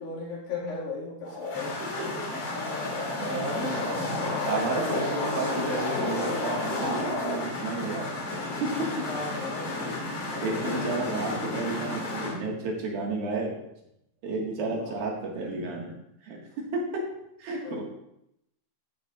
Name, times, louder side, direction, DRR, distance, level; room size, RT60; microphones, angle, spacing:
voice 1, 0.0-2.1 3.3-3.6 9.1-9.8 10.3-11.2 14.7-15.0 17.6-17.8, left 4 dB, 80° left, -4 dB, 4.0 m, -38 dB
sound 1, 1.2-12.3, left 2 dB, 45° left, 3.3 m, -31 dB
voice 2, 3.2-3.9 4.4-8.1 8.6-8.7 10.1-13.5 14.2-16.0 16.2-16.4 16.7-17.0 17.4-17.8, right 3 dB, 85° right, -1 dB, 3.6 m, -32 dB
13.5 x 8.3 x 2.5 m, 0.81 s
omnidirectional pair, 4.1 m